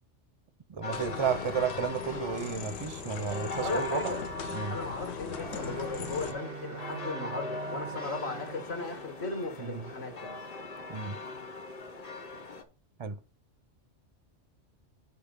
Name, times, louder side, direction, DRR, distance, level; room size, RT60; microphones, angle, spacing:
voice 1, 0.7-4.1 4.5-4.8 9.6-9.9 10.9-11.2 13.0-13.2, right 6 dB, 40° right, 0.4 m, -32 dB
sound 1, 0.8-12.6, left 2 dB, 35° left, 0.9 m, -40 dB
sound 2, 0.9-6.3, left 7 dB, 85° left, 1.2 m, -41 dB
voice 2, 3.6-4.2 4.7-10.4, left 3 dB, 55° left, 1.9 m, -37 dB
Bowed string instrument, 5.3-10.1, right 13 dB, 85° right, 1.0 m, -45 dB
6.8 x 5.4 x 5.3 m
omnidirectional pair, 1.3 m